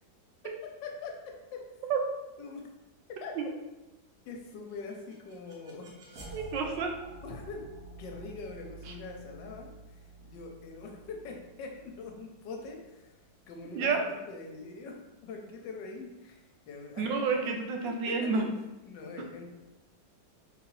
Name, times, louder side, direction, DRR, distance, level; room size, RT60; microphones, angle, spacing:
voice 1, 0.8-1.1 1.5-1.6 2.4-2.6 3.1-3.3 4.3-6.4 7.2-7.6 8.0-13.2 13.5-15.0 15.2-17.1 17.4-17.5 18.0-18.4 18.8-19.4, left 4 dB, 75° left, 2 dB, 1.3 m, -43 dB
sound 1, 4.7-13.6, right 1 dB, 55° right, 1.4 m, -50 dB
voice 2, 6.3-6.9 13.7-14.0 17.0-18.4, right 5 dB, 80° right, 3 dB, 1.3 m, -29 dB
3.8 x 3.7 x 3.1 m, 1.0 s
omnidirectional pair, 2.0 m